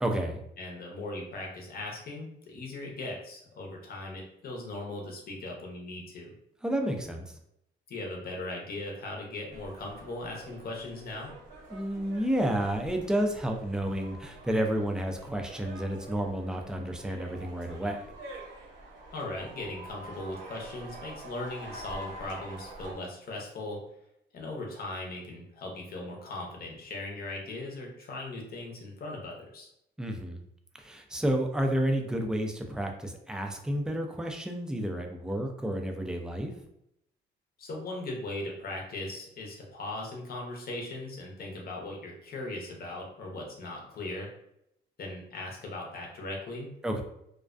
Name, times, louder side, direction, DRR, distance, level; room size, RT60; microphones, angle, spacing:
voice 1, 0.0-0.4 6.6-7.3 11.7-18.1 30.0-30.4 30.7-36.5 46.8-47.0, right 1 dB, 5° right, 3 dB, 0.3 m, -30 dB
voice 2, 0.6-6.3 7.9-11.3 19.1-23.8 24.3-29.7 37.6-44.3 45.0-46.7, left 2 dB, 50° left, 0 dB, 0.7 m, -39 dB
sound 1, 9.5-22.9, right 1 dB, 75° right, 0.9 m, -46 dB
2.3 x 2.2 x 2.4 m, 0.77 s
cardioid pair, 90°, 20 cm